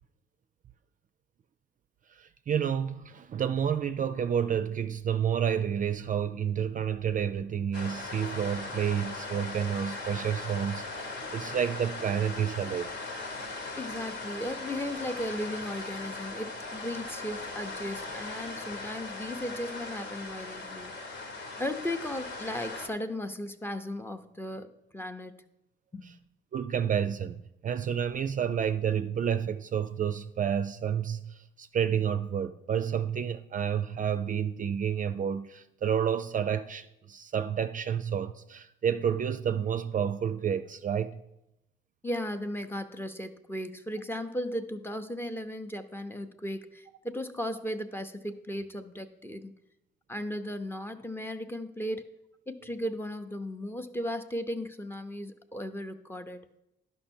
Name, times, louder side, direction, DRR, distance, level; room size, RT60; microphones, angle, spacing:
voice 1, 2.1-13.0 26.5-41.2, right 8 dB, 40° right, 0.4 m, -30 dB
sound 1, 7.7-22.9, left 3 dB, 65° left, 1.4 m, -39 dB
voice 2, 13.8-20.9 21.6-25.4 25.9-26.1 42.0-49.5 50.1-52.1 52.5-56.4, left 1 dB, 10° left, 0.6 m, -36 dB
11.5 x 5.5 x 4.4 m
cardioid pair, 90°, 20 cm